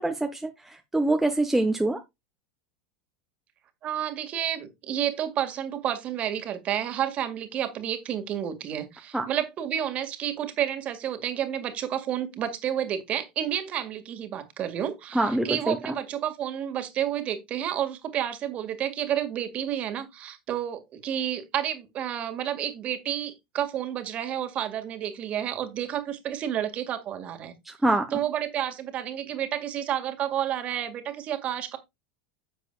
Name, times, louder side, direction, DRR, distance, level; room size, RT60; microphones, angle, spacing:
voice 1, 0.0-2.0 9.1-9.2 15.1-15.9 27.6-28.2, right 2 dB, 5° right, 0.9 m, -25 dB
voice 2, 3.8-27.5 28.1-31.8, right 10 dB, 35° right, 1.9 m, -30 dB
10.5 x 7.5 x 2.3 m
figure-of-eight pair, 80°, 4 cm